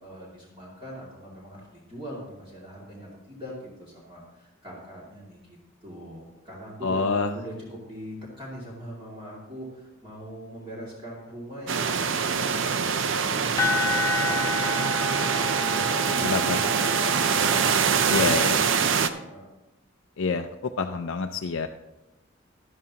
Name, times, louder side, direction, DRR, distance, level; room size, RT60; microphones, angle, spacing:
voice 1, 0.0-19.0 19.3-19.5, equal, 25° right, -5 dB, 2.3 m, -42 dB
voice 2, 6.8-7.3 16.2-16.6 18.1-18.7 20.2-21.7, left 4 dB, 70° left, 5 dB, 0.5 m, -27 dB
sound 1, 11.7-19.1, right 6 dB, 60° right, 0.6 m, -24 dB
sound 2, 13.6-19.2, left 3 dB, 15° left, 0.5 m, -31 dB
12.5 x 12.0 x 2.9 m, 0.96 s
head